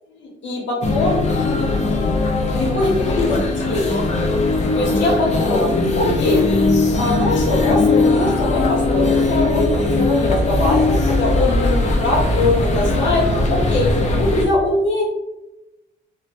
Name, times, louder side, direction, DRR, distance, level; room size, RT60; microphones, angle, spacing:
voice 1, 0.1-1.2 1.7-2.3 2.5-4.1 4.8-5.7 5.9-15.0, left 2 dB, 70° left, -2 dB, 0.9 m, -22 dB
sound 1, 0.8-14.4, left 2 dB, 35° left, 0.5 m, -19 dB
2.1 x 2.1 x 2.7 m, 0.97 s
cardioid pair, 90°, 20 cm